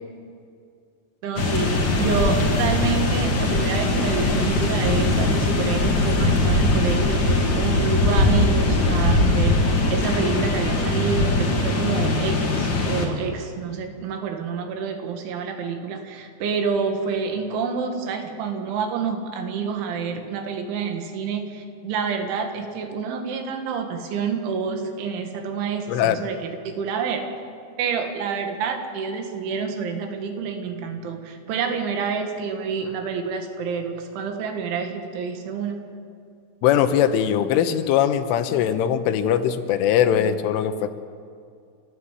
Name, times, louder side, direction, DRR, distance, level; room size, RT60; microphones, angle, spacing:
voice 1, 1.2-27.3 27.8-35.8, right 6 dB, 75° right, 5 dB, 4.0 m, -28 dB
sound 1, 1.4-13.1, left 2 dB, 40° left, 1.8 m, -21 dB
voice 2, 36.6-40.9, left 9 dB, 85° left, 9 dB, 3.5 m, -21 dB
29.5 x 13.0 x 8.3 m, 2.3 s
omnidirectional pair, 5.7 m